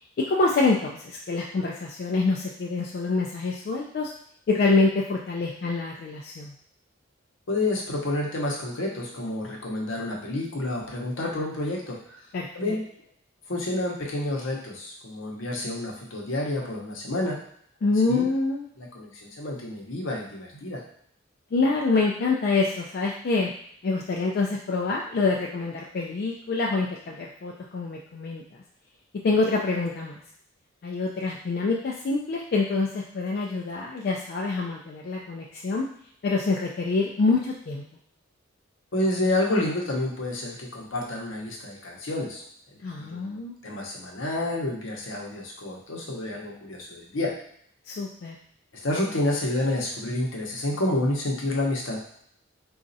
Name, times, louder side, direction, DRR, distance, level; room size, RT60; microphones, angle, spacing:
voice 1, 0.3-4.1 4.5-6.5 12.3-12.8 17.8-18.7 21.5-23.5 23.8-28.4 29.2-30.2 30.8-35.9 36.2-37.8 42.8-43.5 47.9-48.4, left 3 dB, 50° left, -2 dB, 0.3 m, -26 dB
voice 2, 7.5-12.2 12.5-12.9 13.5-17.4 18.1-18.3 18.8-20.8 38.9-42.4 43.0-47.3 48.7-52.0, left 1 dB, 75° left, -2 dB, 0.8 m, -29 dB
4.0 x 2.4 x 2.6 m, 0.66 s
head